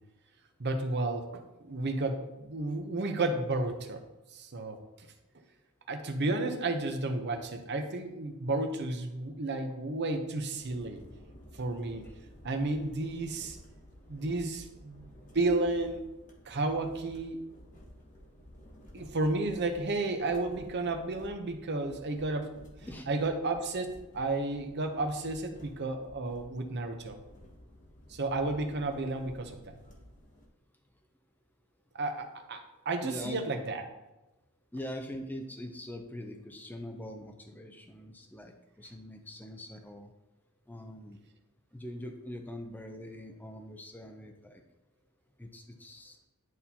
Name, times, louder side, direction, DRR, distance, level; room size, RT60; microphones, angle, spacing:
voice 1, 0.6-4.0 4.3-4.8 5.9-11.0 11.6-12.1 12.4-13.6 14.1-16.1 16.5-17.4 18.9-22.5 23.1-27.2 28.1-29.8 31.9-33.9, right 2 dB, 50° right, 5 dB, 0.8 m, -32 dB
sound 1, 10.5-30.5, equal, 35° left, 1.2 m, -53 dB
voice 2, 33.0-33.6 34.7-40.1 40.7-41.2 41.7-44.6 45.4-46.2, left 1 dB, 10° left, 4 dB, 0.5 m, -43 dB
11.0 x 4.2 x 2.8 m, 0.99 s
head